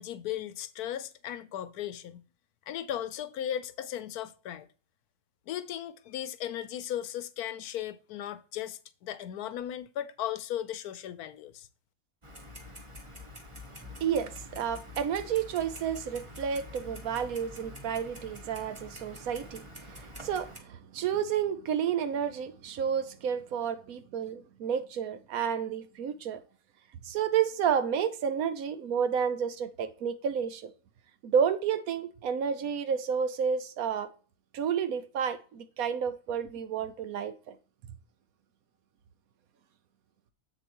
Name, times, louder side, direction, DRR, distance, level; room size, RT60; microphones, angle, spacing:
voice 1, 0.0-2.2 2.7-4.7 5.5-11.7, left 11 dB, 80° left, 1.1 m, -36 dB
Clock, 12.2-20.6, left 1 dB, 20° right, 1.2 m, -46 dB
voice 2, 14.0-26.4 27.0-30.7 31.2-34.1 34.5-37.5, right 7 dB, 70° right, 1.1 m, -31 dB
7.7 x 6.8 x 3.0 m
omnidirectional pair, 1.6 m